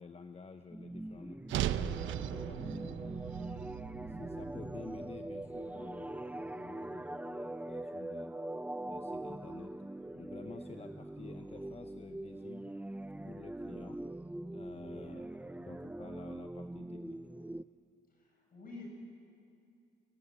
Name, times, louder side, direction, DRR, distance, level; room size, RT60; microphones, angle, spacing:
voice 1, 0.0-3.0 3.9-8.3 8.8-12.8 13.3-14.0 14.5-17.2, left 5 dB, 30° left, 7 dB, 1.0 m, -51 dB
sound 1, 0.7-17.6, right 1 dB, 5° right, 0.5 m, -43 dB
sound 2, 1.5-5.8, right 11 dB, 80° right, 0.7 m, -38 dB
voice 2, 18.1-18.9, left 3 dB, 45° left, -1 dB, 6.5 m, -49 dB
24.0 x 18.5 x 8.5 m, 2.5 s
cardioid pair, 90°, 20 cm